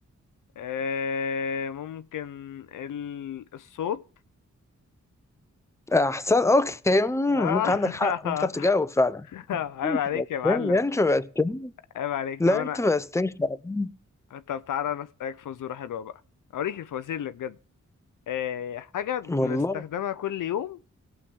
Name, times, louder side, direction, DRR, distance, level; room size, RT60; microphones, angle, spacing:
voice 1, 0.6-4.0 7.3-8.7 9.3-10.8 11.9-12.8 14.3-16.1 16.5-17.6 18.3-20.8, left 9 dB, 75° left, 0.5 m, -31 dB
voice 2, 5.9-9.3 9.8-11.7 12.4-13.9 19.3-19.8, left 2 dB, 10° left, 0.6 m, -24 dB
17.5 x 7.0 x 3.5 m
cardioid pair, 65°, 31 cm